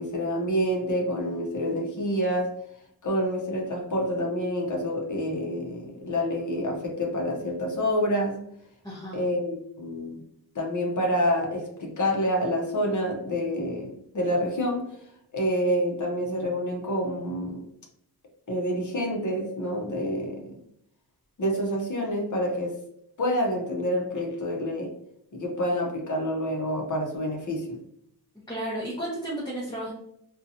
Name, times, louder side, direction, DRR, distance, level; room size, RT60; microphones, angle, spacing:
voice 1, 0.0-2.5 3.0-8.4 9.1-10.2 10.5-14.9 15.3-17.6 18.5-20.5 21.4-22.8 23.2-24.9 25.3-27.8, equal, 50° left, 0 dB, 0.7 m, -27 dB
voice 2, 8.8-9.3 28.5-29.9, right 1 dB, 10° left, -5 dB, 0.6 m, -33 dB
2.7 x 2.2 x 2.6 m, 0.73 s
wide cardioid pair, 120°, 39 cm